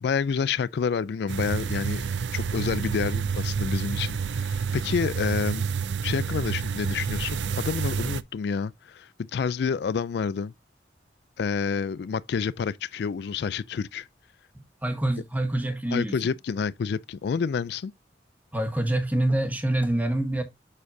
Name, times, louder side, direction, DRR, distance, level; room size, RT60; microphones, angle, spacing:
voice 1, 0.0-2.0 2.3-5.7 6.0-10.5 11.4-14.1 15.9-17.9, left 6 dB, 65° left, 0.3 m, -29 dB
sound 1, 1.3-8.2, right 6 dB, 80° right, 0.5 m, -29 dB
voice 2, 14.5-16.1 18.5-20.4, right 1 dB, 10° right, 1.4 m, -26 dB
7.4 x 6.4 x 2.6 m
head